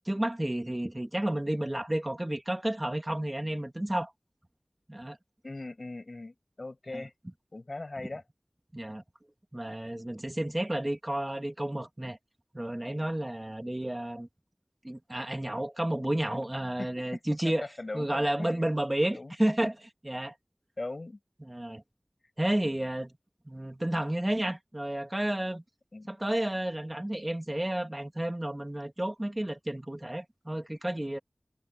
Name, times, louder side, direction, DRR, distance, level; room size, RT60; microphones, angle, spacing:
voice 1, 0.1-4.1 4.9-5.2 6.9-7.0 8.7-9.0 9.5-12.2 12.5-14.3 14.8-17.7 17.9-20.3 21.4-21.8 22.4-23.1 23.5-25.6 26.1-31.2, right 1 dB, 25° right, 2.2 m, -31 dB
voice 2, 5.4-7.1 7.5-8.2 16.8-17.2 17.6-18.7 19.1-19.3 20.8-21.2 25.9-26.1, left 2 dB, 65° left, 6.3 m, -40 dB
wide cardioid pair, 50°, 0 cm